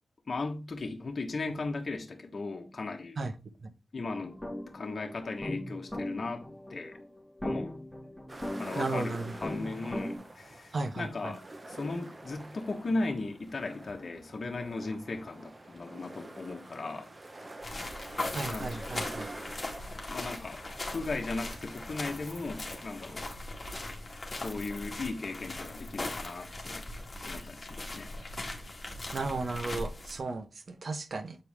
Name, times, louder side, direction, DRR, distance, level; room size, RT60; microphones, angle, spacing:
voice 1, 0.3-3.2 3.9-4.4 4.7-7.0 7.4-7.7 8.5-17.1 18.5-18.9 20.1-23.2 24.3-26.8 27.2-28.1, left 3 dB, 50° left, 1.2 m, -37 dB
sound 1, 4.1-10.2, left 1 dB, 5° left, 1.9 m, -39 dB
sound 2, 8.3-23.2, right 2 dB, 30° right, 1.1 m, -47 dB
voice 2, 8.8-9.3 10.7-11.3 18.3-19.3 29.1-31.4, right 3 dB, 55° right, 0.9 m, -35 dB
sound 3, 17.6-30.2, left 2 dB, 30° left, 1.9 m, -39 dB
7.6 x 4.7 x 3.5 m
wide cardioid pair, 85°, 0 cm